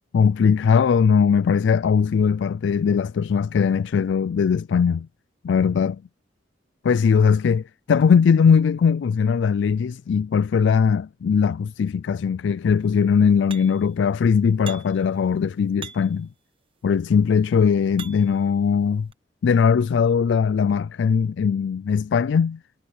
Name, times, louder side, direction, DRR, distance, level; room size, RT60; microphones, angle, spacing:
voice 1, 0.1-5.1 5.4-6.0 6.8-16.3 16.8-19.1 19.4-22.6, left 6 dB, 80° left, 0.3 m, -20 dB
sound 1, 13.5-13.9 14.7-15.1 15.8-16.3 17.1-18.5 19.1-19.2, right 7 dB, 30° right, 1.0 m, -42 dB
head